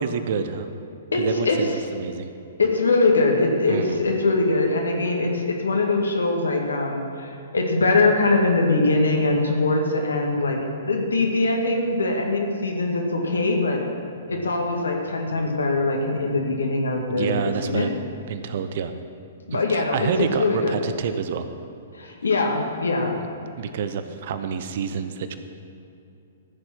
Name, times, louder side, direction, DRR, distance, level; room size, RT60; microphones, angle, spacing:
voice 1, 0.0-0.7 1.1-2.3 3.7-4.0 17.1-17.9 18.3-18.9 19.5-21.5 23.6-25.4, right 7 dB, 55° right, 9 dB, 0.8 m, -28 dB
voice 2, 1.1-1.6 2.6-10.6 10.9-13.8 14.3-17.4 17.6-17.9 19.5-20.1 20.4-20.8 21.9-23.2, left 3 dB, 80° left, 1 dB, 1.9 m, -22 dB
14.5 x 7.0 x 6.1 m, 2.7 s
figure-of-eight pair, 115°, 0 cm